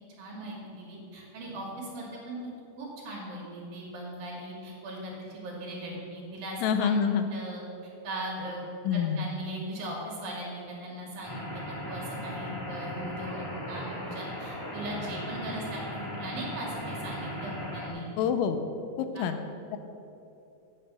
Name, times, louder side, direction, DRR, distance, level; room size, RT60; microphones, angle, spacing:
voice 1, 0.2-2.4 2.8-7.0 7.3-7.6 8.0-18.1 19.1-19.3, right 1 dB, 60° right, -3 dB, 3.2 m, -39 dB
voice 2, 6.6-7.3 8.8-9.3 18.2-18.6 19.0-19.4 19.7-19.8, left 7 dB, 85° left, 8 dB, 3.1 m, -26 dB
sound 1, 11.2-17.9, equal, 20° left, 0.5 m, -37 dB
9.1 x 8.3 x 6.2 m, 2.8 s
omnidirectional pair, 5.4 m